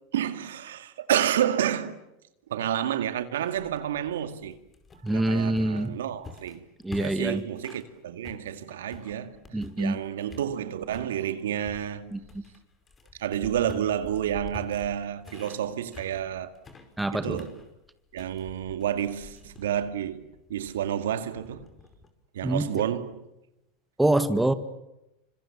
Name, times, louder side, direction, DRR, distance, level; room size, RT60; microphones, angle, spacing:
voice 1, 0.1-2.0 2.5-4.6 5.1-6.6 7.0-12.2 13.2-16.5 17.1-17.6 18.1-20.2 20.5-21.7 22.3-23.3, right 10 dB, 85° right, 2.2 m, -30 dB
sound 1, 3.5-7.9 8.2-10.0 10.3-11.1 11.6-22.1, left 4 dB, 20° left, 5.1 m, -48 dB
voice 2, 5.0-5.9 6.8-7.4 9.5-10.0 12.1-12.2 17.0-17.4 22.4-22.8 24.0-24.5, right 1 dB, 5° right, 2.0 m, -25 dB
29.5 x 26.0 x 7.3 m
hypercardioid pair, 105°, 0 cm